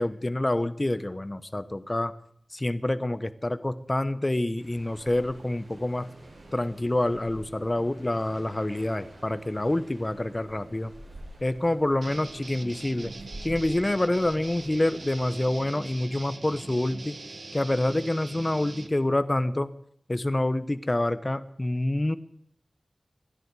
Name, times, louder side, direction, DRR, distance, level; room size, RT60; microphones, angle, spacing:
voice 1, 0.0-2.1 2.5-6.1 6.5-10.9 11.4-13.1 13.4-17.2 17.5-19.7 20.1-22.2, left 1 dB, 25° left, 12 dB, 0.9 m, -27 dB
sound 1, 4.6-15.0, right 1 dB, 80° right, 6.6 m, -48 dB
sound 2, 12.0-18.9, right 3 dB, 65° right, 1.4 m, -42 dB
27.5 x 10.5 x 4.8 m, 0.68 s
wide cardioid pair, 75°, 0 cm